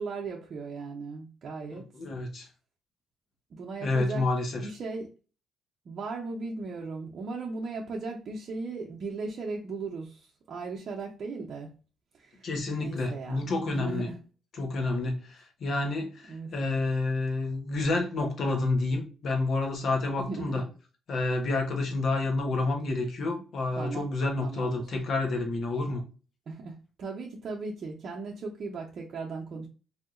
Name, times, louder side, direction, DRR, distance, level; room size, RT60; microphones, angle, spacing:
voice 1, 0.0-1.9 3.5-4.3 4.6-5.1 5.9-11.7 12.1-12.5 12.8-14.2 16.3-16.5 20.2-20.6 23.8-24.1 24.4-24.9 26.5-29.7, right 3 dB, 55° right, 0.6 m, -37 dB
voice 2, 1.9-2.5 3.8-4.6 12.4-14.1 14.6-20.6 21.1-26.0, left 2 dB, 60° left, 1.1 m, -29 dB
3.5 x 2.7 x 2.4 m
cardioid pair, 90°, 0 cm